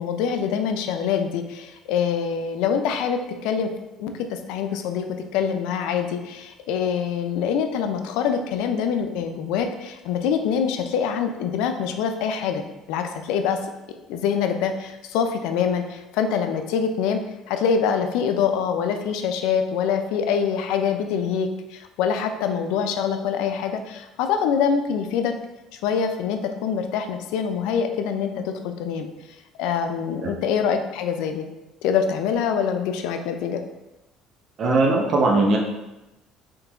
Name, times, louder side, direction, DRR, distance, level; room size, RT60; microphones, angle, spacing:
voice 1, 0.0-3.7 4.0-5.1 5.3-12.6 12.9-13.6 14.1-25.3 25.7-29.1 29.6-31.5 31.8-33.6, left 7 dB, 85° left, 6 dB, 0.4 m, -25 dB
voice 2, 34.6-35.6, right 2 dB, 50° right, 0 dB, 0.6 m, -19 dB
3.8 x 2.8 x 3.4 m, 0.99 s
cardioid pair, 110°, 0 cm